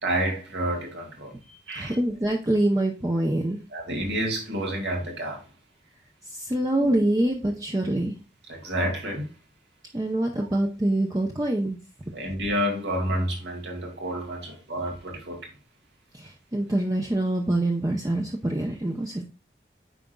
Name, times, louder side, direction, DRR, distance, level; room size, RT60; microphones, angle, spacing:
voice 1, 0.0-2.0 3.7-5.5 6.8-7.0 8.5-9.3 12.1-15.5, right 1 dB, 85° right, 2.3 m, -29 dB
voice 2, 1.7-3.6 6.3-8.1 9.9-11.8 16.1-19.2, right 1 dB, 20° right, 0.6 m, -25 dB
9.0 x 5.0 x 2.2 m
head